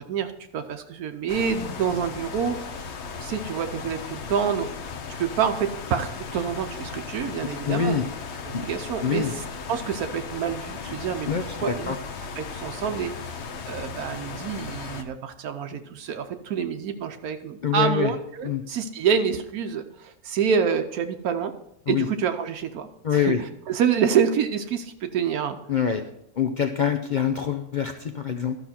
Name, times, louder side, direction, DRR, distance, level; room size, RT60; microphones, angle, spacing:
voice 1, 0.0-4.7 5.1-8.0 8.5-9.4 9.7-11.3 11.6-12.0 12.4-21.5 21.9-25.6, right 7 dB, 85° right, 7 dB, 1.2 m, -27 dB
sound 1, 1.3-15.0, left 5 dB, 55° left, 1.0 m, -36 dB
voice 2, 7.7-8.1 8.5-8.6 9.0-9.3 11.3-12.0 17.6-18.1 18.4-18.6 21.9-22.1 23.0-23.4 25.7-26.0 26.4-28.6, left 7 dB, 70° left, 6 dB, 0.4 m, -25 dB
12.5 x 6.0 x 4.3 m, 0.76 s
omnidirectional pair, 1.5 m